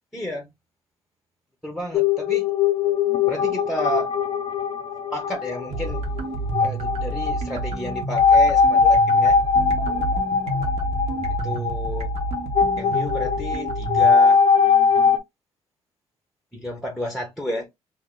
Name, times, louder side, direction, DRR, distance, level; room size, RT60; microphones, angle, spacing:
voice 1, 0.1-0.5 1.6-2.5 3.3-4.1 5.1-6.1 6.6-9.4 11.3-12.1 12.8-14.4 16.5-17.7, equal, ahead, 0.7 m, -31 dB
sound 1, 1.9-15.2, left 5 dB, 50° left, 0.5 m, -21 dB
sound 2, 5.7-14.1, right 3 dB, 65° right, 0.9 m, -29 dB
2.6 x 2.5 x 3.5 m
cardioid pair, 105°, 12 cm